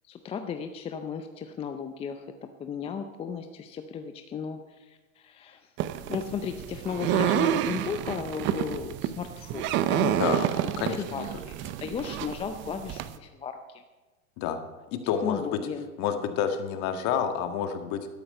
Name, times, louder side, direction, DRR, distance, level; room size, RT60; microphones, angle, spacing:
voice 1, 0.1-2.3 2.6-5.7 6.1-13.8 15.2-15.9, left 7 dB, 15° left, 7 dB, 0.5 m, -35 dB
sound 1, 5.8-13.2, right 11 dB, 25° right, 0.6 m, -29 dB
voice 2, 10.8-11.3 14.4-14.6 14.9-15.6 16.0-18.1, left 8 dB, 40° left, 7 dB, 1.7 m, -29 dB
12.5 x 12.0 x 5.5 m, 1.2 s
hypercardioid pair, 120°, 43 cm